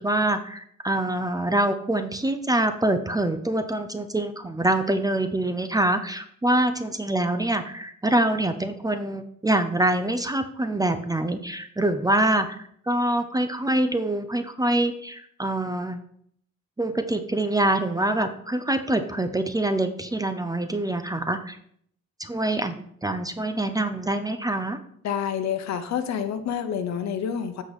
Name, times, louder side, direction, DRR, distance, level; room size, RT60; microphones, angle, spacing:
voice 1, 0.0-12.5 12.9-16.0 16.8-21.6 22.2-24.8, right 1 dB, 10° right, 9 dB, 0.6 m, -25 dB
voice 2, 25.0-27.6, left 8 dB, 65° left, 9 dB, 0.9 m, -28 dB
7.7 x 5.0 x 4.2 m, 0.66 s
cardioid pair, 90°, 30 cm